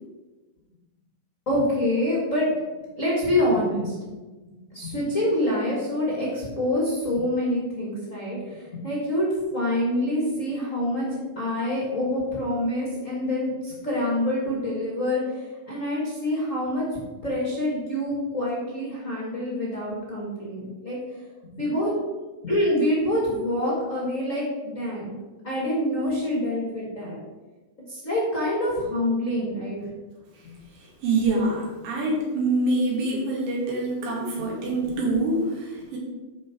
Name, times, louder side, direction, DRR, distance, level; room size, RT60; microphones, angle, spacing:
voice 1, 1.4-2.5 3.0-4.1 4.7-11.1 11.3-16.8 17.2-21.0 21.6-21.9 22.4-25.1 25.4-27.2 27.9-29.8 30.4-30.6 34.4-34.5 34.9-35.0, left 1 dB, 35° left, -5 dB, 1.2 m, -26 dB
voice 2, 31.0-36.0, right 2 dB, 75° right, -3 dB, 4.3 m, -25 dB
12.0 x 4.9 x 4.6 m, 1.2 s
omnidirectional pair, 5.0 m